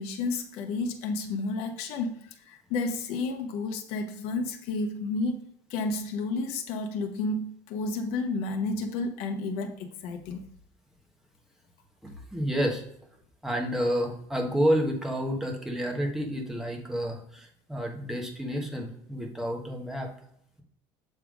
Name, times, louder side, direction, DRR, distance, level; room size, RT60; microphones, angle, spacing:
voice 1, 0.0-5.4 5.7-10.4, left 3 dB, 65° left, 4 dB, 0.9 m, -31 dB
voice 2, 12.0-12.8 13.4-20.1, equal, 5° right, 1 dB, 1.3 m, -29 dB
7.2 x 3.3 x 5.1 m, 0.71 s
cardioid pair, 140°, 11 cm